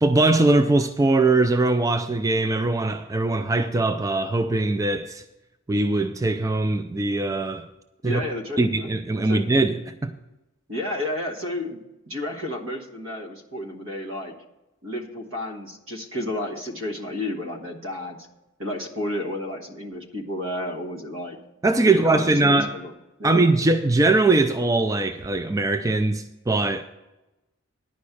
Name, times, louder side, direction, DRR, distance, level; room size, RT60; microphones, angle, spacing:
voice 1, 0.0-5.2 5.7-7.6 8.0-8.2 8.6-10.1 21.6-22.7 23.2-26.8, right 2 dB, 15° right, 0.3 m, -21 dB
voice 2, 8.0-8.9 9.3-9.4 10.7-11.8 12.1-14.3 14.8-18.3 18.6-21.4 21.8-22.9 23.2-23.4, left 1 dB, 75° right, 1.5 m, -31 dB
10.5 x 5.3 x 8.4 m
head